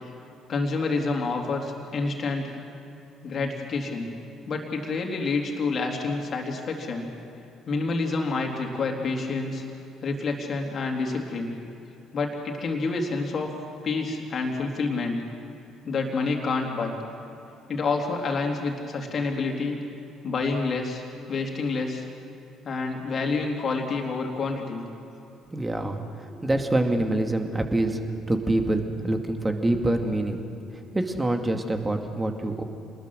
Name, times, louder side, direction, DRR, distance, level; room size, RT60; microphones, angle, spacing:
voice 1, 0.5-2.5 3.2-4.1 4.5-7.1 7.7-9.6 10.0-11.5 12.1-13.5 13.8-15.2 15.8-16.9 17.7-19.8 20.2-21.0 21.3-22.1 22.6-24.8, left 3 dB, 45° left, 1 dB, 3.5 m, -28 dB
voice 2, 25.5-28.0 28.3-30.4 30.9-32.6, right 1 dB, 15° right, 5 dB, 2.3 m, -25 dB
27.5 x 20.5 x 6.4 m, 2.7 s
figure-of-eight pair, 50°, 0 cm